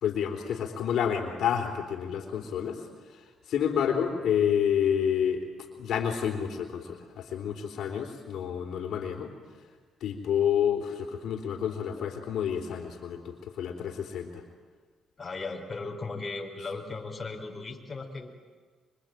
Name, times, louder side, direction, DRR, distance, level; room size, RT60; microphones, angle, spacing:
voice 1, 0.0-2.8 3.5-5.4 5.8-9.3 10.0-14.4, left 8 dB, 75° left, 3 dB, 3.5 m, -29 dB
voice 2, 15.2-18.3, left 3 dB, 30° left, 2 dB, 4.3 m, -37 dB
25.0 x 24.5 x 9.1 m, 1.5 s
cardioid pair, 90°, 0 cm